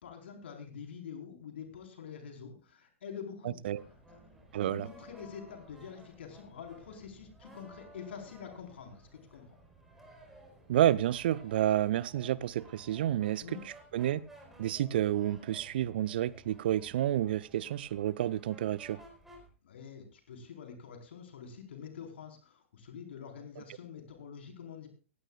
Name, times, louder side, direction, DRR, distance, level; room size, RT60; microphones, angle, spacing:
voice 1, 0.0-3.6 4.1-4.2 4.6-9.6 13.4-13.6 19.6-24.9, left 7 dB, 55° left, 4.3 m, -46 dB
sound 1, 3.8-19.5, right 1 dB, 5° right, 4.3 m, -56 dB
voice 2, 4.5-4.9 10.7-14.2 14.6-19.0, right 12 dB, 50° right, 0.5 m, -30 dB
18.0 x 16.0 x 2.4 m
figure-of-eight pair, 110°, 7 cm